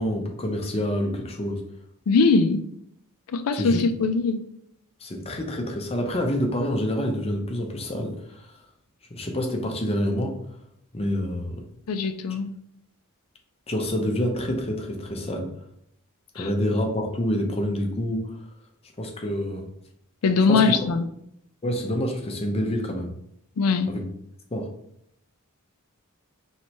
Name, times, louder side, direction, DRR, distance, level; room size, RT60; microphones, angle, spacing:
voice 1, 0.0-1.6 3.5-3.8 5.0-8.1 9.1-10.4 10.9-11.6 13.7-15.5 16.3-18.3 19.0-19.7 20.5-20.7 21.6-23.1 23.9-24.0 24.5-24.7, equal, 25° left, 3 dB, 0.7 m, -27 dB
voice 2, 2.1-2.6 3.3-4.4 11.9-12.5 16.4-16.5 20.2-21.0 23.6-23.9, left 4 dB, 80° left, 10 dB, 0.4 m, -21 dB
4.5 x 3.2 x 3.0 m, 0.74 s
head